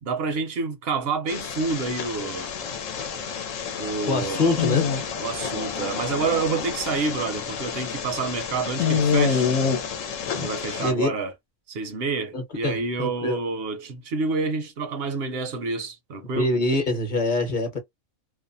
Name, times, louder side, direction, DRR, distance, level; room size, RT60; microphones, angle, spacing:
voice 1, 0.0-2.5 3.8-4.7 5.2-9.5 10.4-11.3 11.7-16.5, right 4 dB, 60° right, 0.7 m, -28 dB
sound 1, 1.3-10.9, left 6 dB, 85° left, 1.0 m, -28 dB
voice 2, 4.1-4.9 10.3-10.5 10.8-11.1 12.3-13.4 16.4-17.8, left 2 dB, 40° left, 0.9 m, -24 dB
2.6 x 2.1 x 2.5 m
omnidirectional pair, 1.3 m